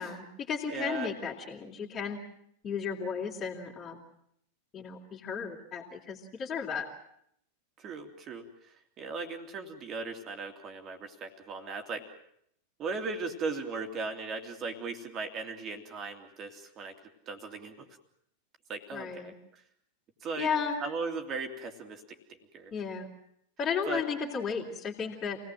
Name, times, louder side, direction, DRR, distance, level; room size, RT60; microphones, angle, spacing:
voice 1, 0.0-2.2 2.6-4.0 4.7-6.9 18.9-19.3 20.4-20.8 22.7-23.1 23.6-25.4, left 6 dB, 25° left, -3 dB, 3.2 m, -34 dB
voice 2, 0.7-1.1 7.8-12.1 12.8-16.9 17.3-17.9 18.7-19.6 20.2-20.5 20.8-22.0 22.3-22.7 23.9-24.0, right 4 dB, 30° right, 5 dB, 2.7 m, -37 dB
27.5 x 18.5 x 7.7 m, 0.71 s
figure-of-eight pair, 90°, 0 cm